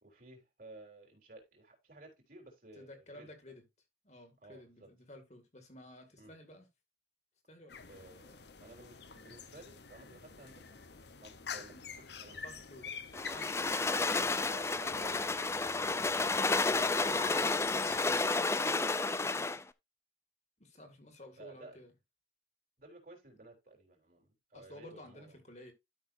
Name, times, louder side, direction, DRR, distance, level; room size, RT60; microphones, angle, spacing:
voice 1, 0.0-3.3 4.4-4.9 6.2-6.3 7.9-10.8 11.2-12.5 12.8-13.2 13.9-15.7 21.4-21.8 22.8-25.4, right 2 dB, 50° right, 3.8 m, -55 dB
voice 2, 2.8-3.6 4.0-6.7 7.5-7.9 11.7-11.9 12.4-12.9 13.3-14.3 17.0-19.6 20.6-21.9 24.5-25.7, left 1 dB, 40° left, 2.0 m, -53 dB
sound 1, 7.7-18.3, left 6 dB, 70° left, 0.9 m, -48 dB
sound 2, 13.1-19.6, left 3 dB, 15° left, 0.4 m, -31 dB
12.5 x 6.1 x 2.7 m
head